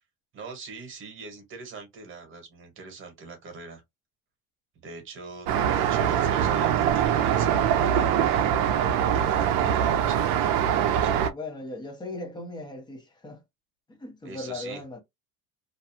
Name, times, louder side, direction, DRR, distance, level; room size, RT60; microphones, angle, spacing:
voice 1, 0.3-3.8 4.8-8.2 8.8-10.4 14.2-14.8, right 4 dB, 30° right, 1.2 m, -42 dB
Traffic noise roadway noise, 5.5-11.3, right 9 dB, 60° right, 0.6 m, -23 dB
voice 2, 11.3-13.4 13.9-15.0, left 2 dB, 10° left, 0.7 m, -38 dB
2.6 x 2.2 x 2.7 m
cardioid pair, 150°, 39 cm